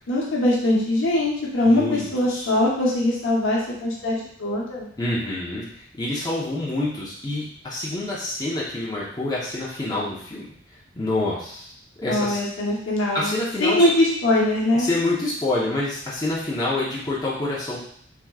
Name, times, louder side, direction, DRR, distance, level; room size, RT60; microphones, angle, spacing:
voice 1, 0.1-4.9 12.1-13.3 13.6-14.9, left 1 dB, 70° left, -3 dB, 0.8 m, -22 dB
voice 2, 1.6-2.5 5.0-5.6 5.9-10.4 11.0-11.7 12.0-12.4 13.1-13.8 14.8-17.8, left 2 dB, 20° left, -7 dB, 0.7 m, -27 dB
3.5 x 3.0 x 2.3 m, 0.64 s
head